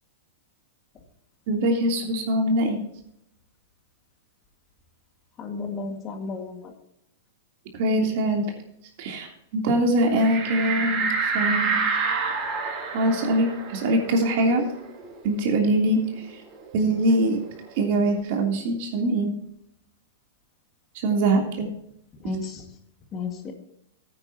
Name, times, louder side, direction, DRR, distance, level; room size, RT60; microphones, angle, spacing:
voice 1, 1.5-2.8 7.7-8.4 9.0-9.3 9.5-11.8 12.9-14.6 15.2-16.0 16.7-17.4 17.8-19.3 21.0-21.7, right 1 dB, 55° right, 2 dB, 3.1 m, -23 dB
voice 2, 5.4-6.7 22.2-22.7 23.1-23.5, left 4 dB, 30° left, 4 dB, 1.9 m, -33 dB
sound 1, 10.1-15.3 15.7-15.8 16.1-17.8, right 5 dB, 35° right, 2.8 m, -28 dB
15.0 x 9.2 x 2.9 m, 0.75 s
hypercardioid pair, 115°, 0 cm